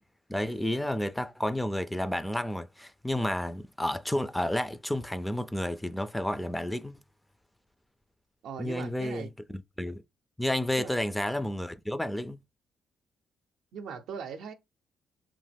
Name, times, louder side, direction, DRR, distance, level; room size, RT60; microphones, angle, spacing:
voice 1, 0.3-7.0 8.6-9.3 9.8-10.0 10.4-12.4, left 1 dB, 5° left, 0.3 m, -31 dB
voice 2, 8.4-9.3 10.8-10.9 13.7-14.5, right 6 dB, 75° right, 0.5 m, -39 dB
3.0 x 2.0 x 3.3 m
cardioid pair, 90°, 0 cm